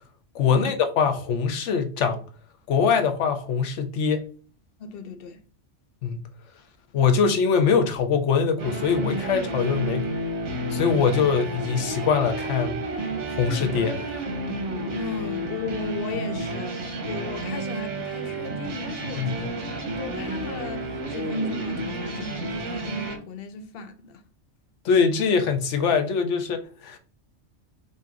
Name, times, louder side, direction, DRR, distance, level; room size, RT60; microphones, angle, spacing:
voice 1, 0.3-2.2 2.7-4.2 6.0-6.2 6.9-10.1 10.7-12.8 13.4-14.0 19.2-19.3 24.8-27.0, left 6 dB, 90° left, 1.0 m, -23 dB
voice 2, 4.8-5.4 14.9-19.6 20.0-24.2, left 3 dB, 60° left, 0.8 m, -35 dB
sound 1, 8.6-23.2, right 2 dB, 85° right, 1.3 m, -31 dB
4.2 x 2.6 x 3.5 m
omnidirectional pair, 1.2 m